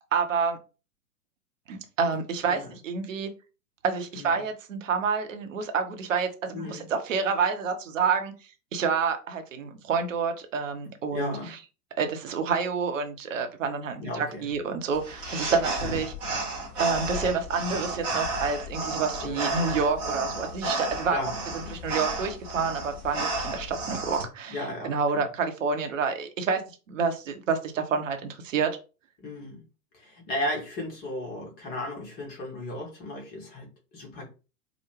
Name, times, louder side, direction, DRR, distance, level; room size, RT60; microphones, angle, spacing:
voice 1, 0.1-0.6 1.7-3.3 3.8-8.3 8.7-11.6 12.0-16.1 16.8-21.2 21.7-24.6 24.8-26.6 26.9-28.8, right 5 dB, 50° right, 6 dB, 0.8 m, -28 dB
voice 2, 11.1-11.5 14.0-14.5 19.2-19.5 21.1-21.3 21.6-21.9 24.5-25.3 29.2-29.6 29.9-34.3, left 1 dB, 20° left, 0 dB, 0.8 m, -35 dB
sound 1, 14.9-24.2, right 2 dB, 5° right, 0.4 m, -32 dB
4.8 x 2.1 x 3.0 m, 0.32 s
figure-of-eight pair, 110°, 50 cm